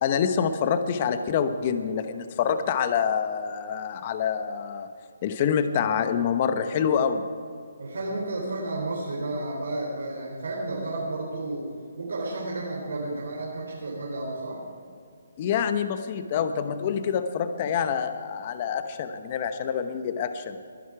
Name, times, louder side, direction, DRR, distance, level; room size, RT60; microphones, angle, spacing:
voice 1, 0.0-4.9 5.2-7.2 15.4-20.6, left 7 dB, 35° left, 9 dB, 0.9 m, -26 dB
voice 2, 7.8-11.7 12.0-14.6, right 2 dB, 80° right, -3 dB, 3.7 m, -32 dB
21.5 x 11.0 x 4.8 m, 2.3 s
hypercardioid pair, 155°, 0 cm